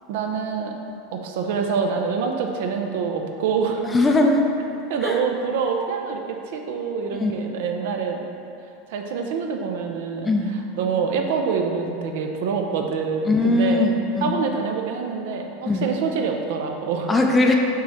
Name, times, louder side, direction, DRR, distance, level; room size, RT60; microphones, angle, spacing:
voice 1, 0.1-0.8 1.1-3.8 4.9-8.2 8.9-13.9 14.2-17.1, right 5 dB, 70° right, 3 dB, 0.6 m, -26 dB
voice 2, 3.8-4.4 5.0-5.2 7.1-7.3 10.2-10.5 13.3-14.3 15.7-15.9 17.1-17.6, left 2 dB, 15° left, 2 dB, 0.5 m, -20 dB
6.0 x 3.1 x 5.6 m, 2.6 s
supercardioid pair, 140°, 0 cm